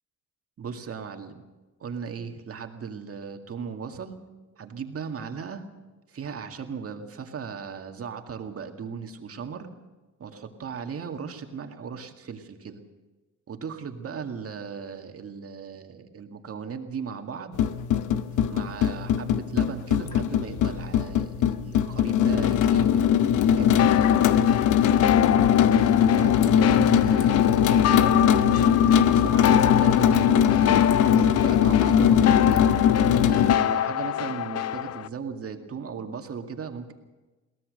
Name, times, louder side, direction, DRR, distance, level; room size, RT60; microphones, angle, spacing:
voice 1, 0.6-1.4 1.8-4.2 4.6-5.6 6.1-9.7 10.2-12.8 13.5-17.6 18.5-23.0 23.6-23.8 26.0-30.8 31.1-32.6 32.9-36.9, right 6 dB, 50° right, 5 dB, 2.1 m, -36 dB
sound 1, 17.5-33.6, left 9 dB, 85° left, 0.9 m, -20 dB
sound 2, 23.8-35.1, left 11 dB, 55° left, 0.6 m, -27 dB
22.5 x 17.5 x 6.6 m, 1.2 s
cardioid pair, 90°, 30 cm